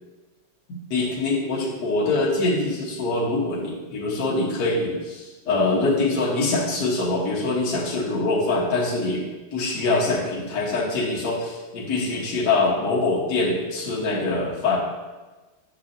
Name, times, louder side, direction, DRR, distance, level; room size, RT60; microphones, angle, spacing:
voice 1, 0.7-14.8, left 2 dB, 55° left, -5 dB, 1.8 m, -24 dB
9.5 x 6.1 x 2.7 m, 1.2 s
omnidirectional pair, 2.3 m